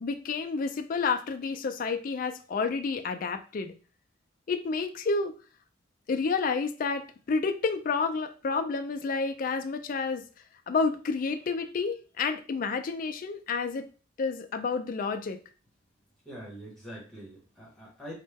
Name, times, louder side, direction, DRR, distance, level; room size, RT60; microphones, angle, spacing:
voice 1, 0.0-3.7 4.5-5.3 6.1-10.2 10.7-13.9 14.2-15.4, left 4 dB, 45° left, 7 dB, 0.3 m, -30 dB
voice 2, 16.2-18.1, equal, 5° left, -6 dB, 1.2 m, -44 dB
3.1 x 2.1 x 3.3 m, 0.35 s
head